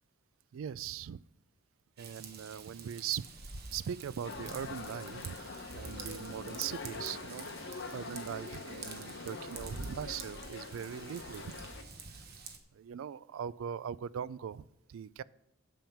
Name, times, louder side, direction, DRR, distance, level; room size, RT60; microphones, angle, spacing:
voice 1, 0.5-1.2 2.0-3.2 3.7-11.5 12.7-15.2, right 8 dB, 70° right, 20 dB, 0.3 m, -40 dB
Raindrop / Vehicle horn car horn honking / Trickle dribble, 2.0-12.6, right 4 dB, 50° right, 1.1 m, -48 dB
sound 1, 4.2-11.8, left 3 dB, 55° left, 0.8 m, -44 dB
9.0 x 7.2 x 5.8 m, 0.88 s
head